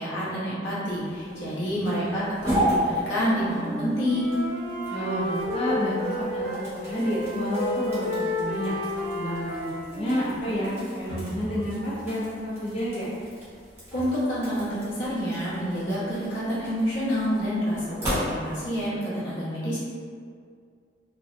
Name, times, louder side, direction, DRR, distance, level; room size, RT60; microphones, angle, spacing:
voice 1, 0.0-4.4 13.9-19.8, equal, 90° left, -9 dB, 0.9 m, -28 dB
sound 1, 0.8-18.8, equal, 15° right, 0.8 m, -35 dB
voice 2, 1.3-1.7 4.9-8.7 9.1-13.1, equal, 35° left, -8 dB, 0.4 m, -30 dB
Wind instrument woodwind instrument, 3.2-6.7 7.0-11.0, left 1 dB, 45° right, 0.4 m, -32 dB
2.5 x 2.0 x 2.5 m, 2.2 s
head